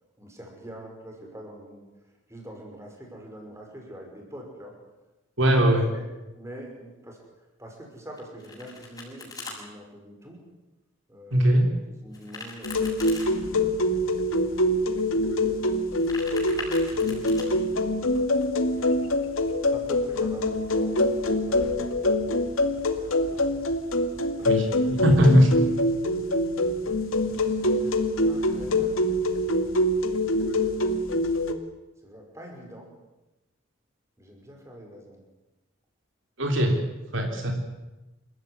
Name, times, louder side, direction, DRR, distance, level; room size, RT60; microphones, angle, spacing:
voice 1, 0.2-1.8 2.3-4.8 5.4-5.6 5.8-6.0 6.3-7.2 7.6-10.4 11.1-14.1 14.5-15.7 16.5-19.3 19.7-22.5 22.9-23.7 24.4-25.9 26.2-26.3 27.2-29.0 29.5-30.3 32.0-32.9 34.2-35.2, equal, 15° right, 1 dB, 5.6 m, -45 dB
voice 2, 5.4-5.9 11.3-11.6 24.4-25.5 36.4-36.8 37.1-37.5, equal, 65° right, 3 dB, 3.7 m, -20 dB
Domestic sounds home sounds, 8.2-9.6 12.1-13.3 15.8-17.4, left 3 dB, 15° left, 7.1 m, -40 dB
sound 1, 12.6-31.5, left 1 dB, 75° left, 2.3 m, -25 dB
28.0 x 15.5 x 9.7 m, 1.0 s
head